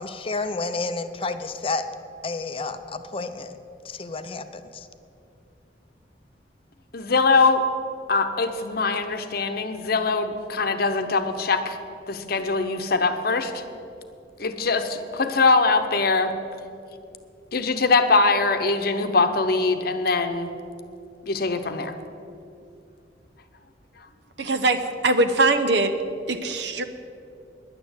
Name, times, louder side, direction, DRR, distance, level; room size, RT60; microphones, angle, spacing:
voice 1, 0.0-1.8 2.2-3.5 3.8-4.9, left 3 dB, 30° left, 9 dB, 0.6 m, -30 dB
voice 2, 6.9-7.6 8.1-11.8 12.1-13.6 14.4-16.4 17.5-20.5 21.3-21.9, left 3 dB, 55° left, 8 dB, 0.9 m, -22 dB
voice 3, 24.4-25.9 26.3-26.8, right 2 dB, 65° right, 9 dB, 0.9 m, -21 dB
10.5 x 9.4 x 8.0 m, 2.6 s
head